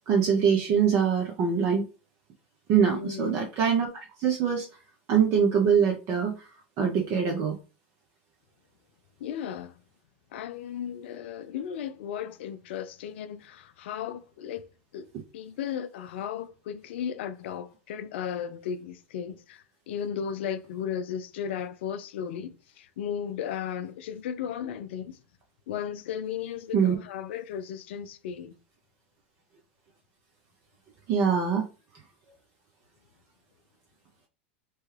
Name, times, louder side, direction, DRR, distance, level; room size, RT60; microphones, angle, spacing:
voice 1, 0.1-1.8 2.7-4.7 5.1-6.5 6.8-7.6 26.7-26.9 31.1-31.7, right 7 dB, 45° right, 0.7 m, -23 dB
voice 2, 2.9-3.5 9.2-9.8 10.3-14.6 14.9-15.1 15.3-25.2 25.7-28.5, left 8 dB, 70° left, 0.4 m, -35 dB
3.0 x 2.2 x 3.2 m
hypercardioid pair, 105°, 6 cm